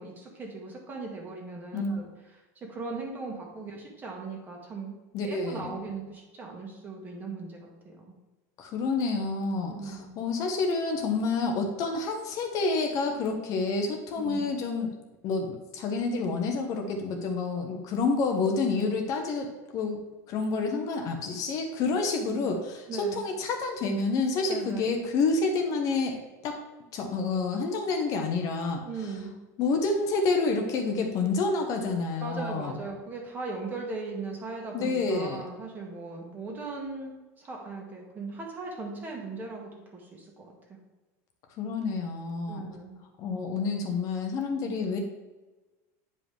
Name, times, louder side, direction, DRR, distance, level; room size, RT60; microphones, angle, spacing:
voice 1, 0.0-2.1 2.6-5.0 5.2-8.1 9.7-10.1 14.2-14.5 22.2-22.4 22.9-23.2 24.5-24.9 28.9-29.3 32.2-40.5 42.5-43.0 44.6-44.8, right 3 dB, 20° right, 0 dB, 1.7 m, -38 dB
voice 2, 5.1-5.8 8.6-14.9 15.2-20.0 20.3-26.6 26.9-29.1 29.6-32.8 34.7-35.4 41.6-42.6 43.2-45.0, left 3 dB, 40° left, 3 dB, 1.0 m, -28 dB
9.4 x 5.1 x 3.5 m, 1.2 s
supercardioid pair, 145°, 9 cm